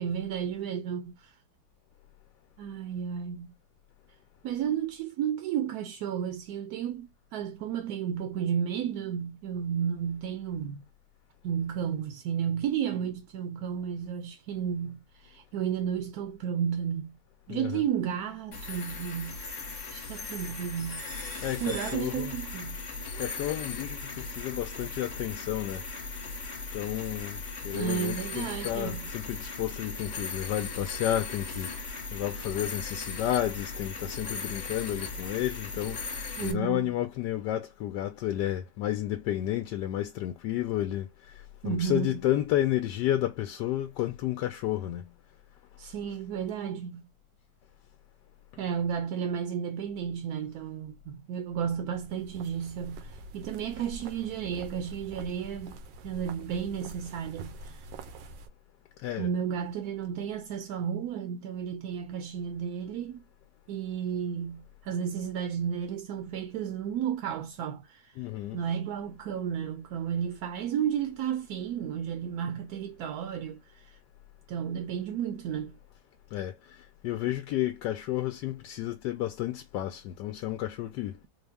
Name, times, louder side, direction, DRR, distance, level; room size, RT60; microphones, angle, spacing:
voice 1, 0.0-1.3 2.6-3.5 4.4-10.9 11.4-17.2 17.5-19.6 19.9-21.1 21.6-22.8 27.7-29.1 36.4-36.9 41.6-42.2 45.8-47.0 48.6-55.8 56.0-57.8 59.2-63.2 63.7-68.2 68.5-74.0 74.5-75.8, right 8 dB, 70° right, 0.9 m, -33 dB
voice 2, 17.5-17.8 21.4-22.4 23.1-25.8 26.7-27.4 27.6-31.7 32.1-45.1 59.0-59.3 68.2-68.6 76.3-76.5 77.0-81.2, left 13 dB, 75° left, 1.2 m, -31 dB
sound 1, 18.5-36.5, left 3 dB, 40° left, 0.7 m, -38 dB
sound 2, 51.9-58.5, right 2 dB, 90° right, 1.4 m, -45 dB
4.2 x 2.1 x 3.4 m
omnidirectional pair, 1.9 m